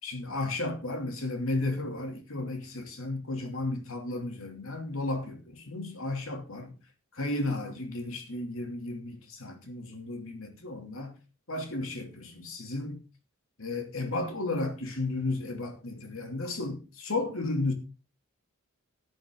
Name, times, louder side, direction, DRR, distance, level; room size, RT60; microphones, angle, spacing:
voice 1, 0.0-6.7 7.2-11.2 11.5-13.0 13.6-17.7, left 2 dB, 65° left, 2.9 m, -33 dB
12.5 x 11.0 x 3.8 m
head